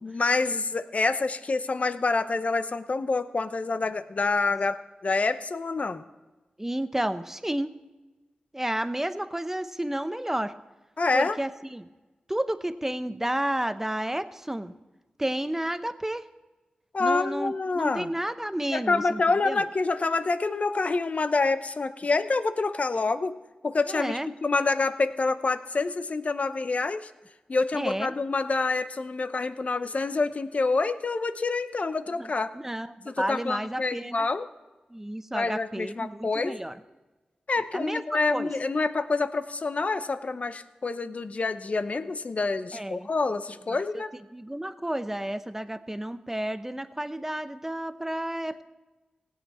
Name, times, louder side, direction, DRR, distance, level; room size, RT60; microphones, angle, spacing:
voice 1, 0.0-6.0 11.0-11.4 16.9-18.1 18.7-23.3 23.6-27.1 27.5-32.5 33.1-34.5 35.3-36.6 37.5-44.1, left 3 dB, 55° left, 11 dB, 0.7 m, -27 dB
voice 2, 6.6-7.7 8.5-10.5 11.1-11.9 12.3-14.7 15.2-16.3 17.0-19.6 23.9-24.3 27.7-28.1 32.2-34.3 34.9-36.8 37.7-38.0 38.3-38.5 42.7-43.1 43.7-44.0 44.3-48.6, right 1 dB, 15° right, 11 dB, 0.8 m, -31 dB
16.5 x 8.3 x 4.3 m, 1.2 s
cardioid pair, 45°, 3 cm